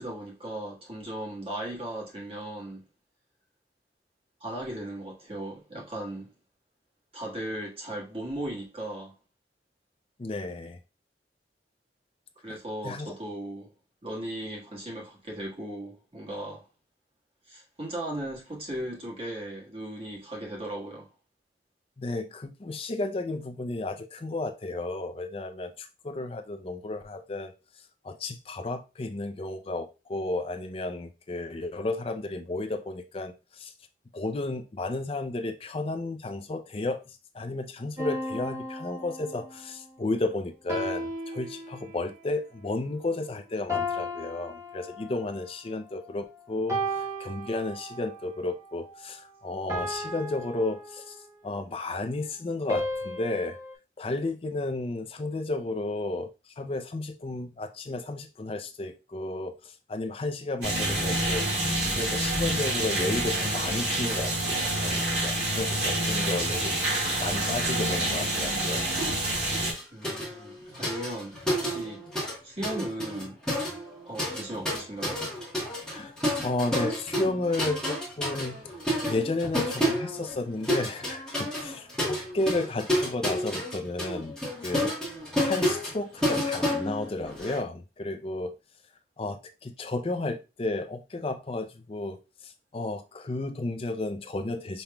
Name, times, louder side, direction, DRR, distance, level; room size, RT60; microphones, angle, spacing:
voice 1, 0.0-2.8 4.4-6.3 7.1-9.1 12.4-13.7 14.0-16.7 17.5-21.1 69.9-72.0 72.4-73.4 74.1-75.2, right 1 dB, 35° right, 1.5 m, -37 dB
voice 2, 10.2-10.8 12.5-12.6 12.8-13.1 22.0-27.5 28.0-33.7 34.1-51.2 51.4-53.6 54.0-68.8 75.9-76.1 76.4-78.6 79.1-84.3 84.6-85.0 85.4-88.5 89.2-94.8, left 2 dB, 35° left, 0.5 m, -33 dB
sound 1, 38.0-39.6 40.7-42.2 43.7-45.4 46.7-48.2 49.7-51.4 52.7-53.7, equal, 15° right, 1.0 m, -35 dB
sound 2, 60.6-69.7, right 1 dB, 70° right, 1.9 m, -27 dB
sound 3, 69.0-69.2 69.5-72.4 72.6-87.6, equal, 5° left, 1.2 m, -30 dB
5.4 x 3.0 x 2.2 m
head